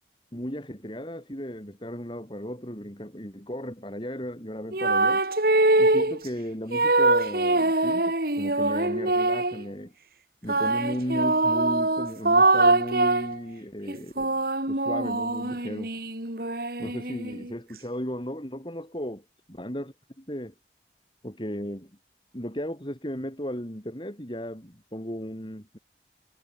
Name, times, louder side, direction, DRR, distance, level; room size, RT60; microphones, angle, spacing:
voice 1, 0.3-5.2 5.8-9.9 10.4-14.4 14.7-15.9 16.8-19.2 19.6-20.5 21.2-21.9 22.3-25.8, equal, 25° left, 7.5 m, -35 dB
sound 1, 4.7-6.2 6.7-9.6 10.5-13.4 13.9-17.5, right 2 dB, 55° right, 4.7 m, -23 dB
head